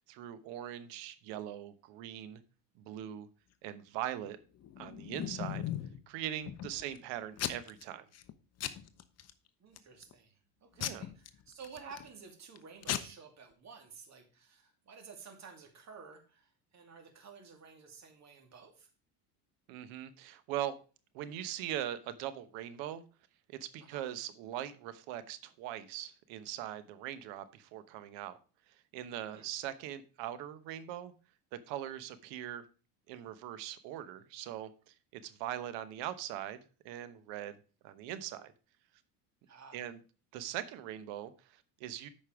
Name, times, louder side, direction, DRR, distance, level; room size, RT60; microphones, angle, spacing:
voice 1, 0.0-2.4 2.8-3.3 3.6-4.4 4.8-5.7 6.1-8.0 10.8-11.0 19.7-20.8 21.1-23.0 23.5-28.4 28.9-31.1 31.7-32.6 33.1-34.9 35.2-36.6 36.8-38.5 39.7-40.0 40.3-42.1, right 12 dB, 65° right, 1.1 m, -41 dB
Packing tape duct tape / Tearing, 4.6-6.0 6.5-7.0 7.4-7.8 8.1-8.3 8.6-9.3 9.8-10.1 10.8-12.1 12.6-12.7 12.8-13.0, left 10 dB, 35° left, 0.9 m, -38 dB
voice 2, 6.7-7.0 9.6-18.9 23.8-24.1 29.3-29.5 39.5-39.9, right 5 dB, 35° right, 2.6 m, -53 dB
8.6 x 5.4 x 4.9 m
supercardioid pair, 105°, 47 cm